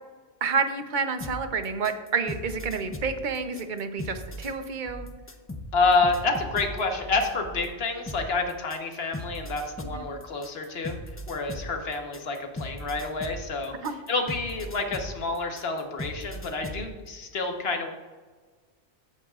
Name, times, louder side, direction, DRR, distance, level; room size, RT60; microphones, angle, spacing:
voice 1, 0.4-5.1 9.9-10.0 13.8-13.9, right 5 dB, 50° right, 8 dB, 0.9 m, -29 dB
sound 1, 1.2-7.7 8.1-16.9, equal, 20° left, 0.4 m, -38 dB
voice 2, 5.7-11.0 11.3-13.7 14.1-17.9, left 3 dB, 60° left, 4 dB, 1.4 m, -28 dB
14.5 x 8.2 x 2.4 m, 1.4 s
omnidirectional pair, 1.2 m